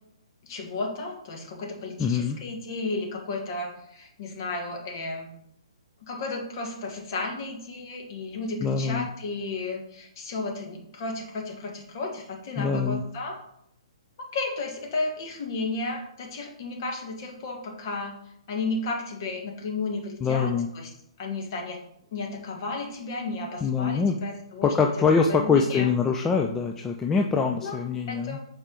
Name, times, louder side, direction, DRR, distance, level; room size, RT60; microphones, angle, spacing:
voice 1, 0.4-5.3 6.1-13.4 14.2-18.2 18.5-20.9 21.2-21.8 22.1-24.7 25.3-25.9 27.6-27.8 28.1-28.4, left 3 dB, 40° left, 2 dB, 1.4 m, -33 dB
voice 2, 2.0-2.4 8.6-9.1 12.6-13.0 20.2-20.7 23.6-24.2 24.6-28.4, left 5 dB, 10° left, 2 dB, 0.3 m, -24 dB
6.2 x 4.7 x 3.8 m, 0.75 s
figure-of-eight pair, 125°, 3 cm